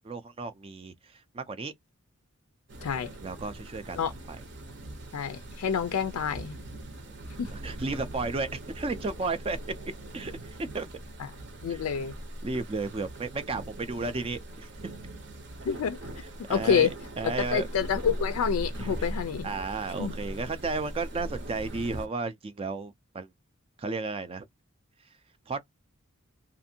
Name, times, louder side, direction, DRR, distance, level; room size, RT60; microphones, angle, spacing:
voice 1, 0.0-1.7 3.2-4.0 4.3-4.4 7.5-9.6 10.1-10.9 11.7-11.9 12.4-14.7 16.5-17.7 18.8-19.1 19.4-23.3 23.8-24.5 25.5-25.6, right 3 dB, 25° right, 0.3 m, -33 dB
sound 1, 2.7-22.1, right 1 dB, 55° right, 0.7 m, -40 dB
voice 2, 5.1-6.6 7.4-7.5 11.2-11.3 11.6-12.1 15.7-16.9 17.2-19.5 20.0-20.2, left 7 dB, 85° left, 0.4 m, -28 dB
2.5 x 2.5 x 2.7 m
head